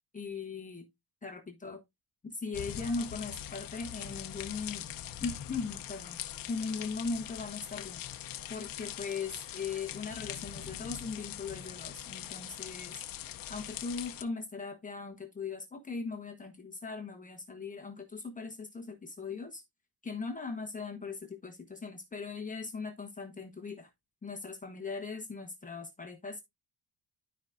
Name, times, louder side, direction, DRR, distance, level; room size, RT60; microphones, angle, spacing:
voice 1, 0.1-0.9 1.2-1.8 2.2-4.8 5.2-6.2 6.5-8.0 8.5-13.0 13.5-19.6 20.0-23.9 24.2-26.4, left 4 dB, 15° left, 1.2 m, -39 dB
sound 1, 2.5-14.2, left 11 dB, 50° left, 0.8 m, -42 dB
12.5 x 4.9 x 2.6 m
cardioid pair, 175°, 45 cm